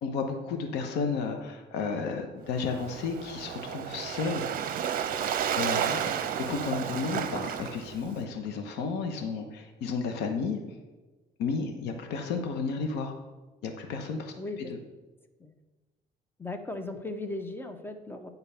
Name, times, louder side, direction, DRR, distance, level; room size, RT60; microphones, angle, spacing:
voice 1, 0.0-4.4 5.6-6.2 6.5-10.6 11.4-13.1 13.6-14.3, left 5 dB, 85° left, 5 dB, 1.0 m, -32 dB
Waves surf, 2.5-8.2, right 8 dB, 55° right, 0.7 m, -32 dB
voice 2, 5.7-6.0 14.4-14.8 15.4-15.5 16.4-18.3, left 2 dB, 15° left, 7 dB, 0.8 m, -37 dB
9.0 x 4.0 x 5.6 m, 1.2 s
cardioid pair, 110°, 17 cm